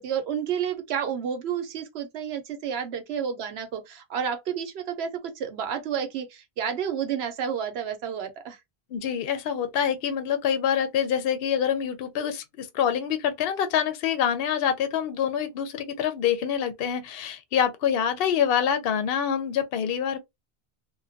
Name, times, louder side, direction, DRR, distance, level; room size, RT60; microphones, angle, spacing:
voice 1, 0.0-8.6, right 8 dB, 80° right, 0.9 m, -30 dB
voice 2, 8.9-20.2, left 8 dB, 70° left, 0.7 m, -26 dB
2.2 x 2.1 x 2.6 m
omnidirectional pair, 1.1 m